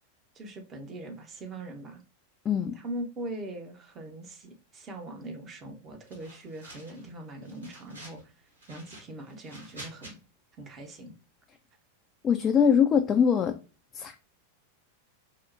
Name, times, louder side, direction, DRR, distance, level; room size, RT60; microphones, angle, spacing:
voice 1, 0.3-2.0 2.7-8.3 8.7-10.2 10.6-11.2, right 1 dB, 25° right, 0.7 m, -41 dB
sound 1, 6.1-7.1 7.4-8.2 8.6-10.1, right 1 dB, 75° right, 1.6 m, -48 dB
voice 2, 12.2-13.6 13.9-14.2, left 7 dB, 25° left, 0.3 m, -22 dB
4.4 x 2.1 x 2.5 m
figure-of-eight pair, 90°, 0 cm